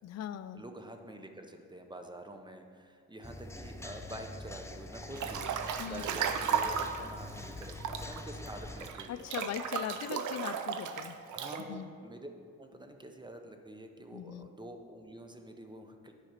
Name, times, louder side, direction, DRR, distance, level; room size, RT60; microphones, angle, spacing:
voice 1, 0.0-0.6 5.8-6.0 9.1-11.2 11.6-11.9 14.1-14.5, left 10 dB, 60° left, 12 dB, 0.4 m, -40 dB
voice 2, 0.5-9.3 11.3-12.3 12.6-16.1, right 1 dB, 15° right, 5 dB, 0.8 m, -47 dB
sound 1, 3.2-8.9, left 2 dB, 10° left, 0.5 m, -45 dB
Breathing / Bathtub (filling or washing) / Splash splatter, 5.2-7.1 7.6-11.6, right 7 dB, 80° right, 0.6 m, -34 dB
9.5 x 5.0 x 5.8 m, 2.3 s
cardioid pair, 100°, 29 cm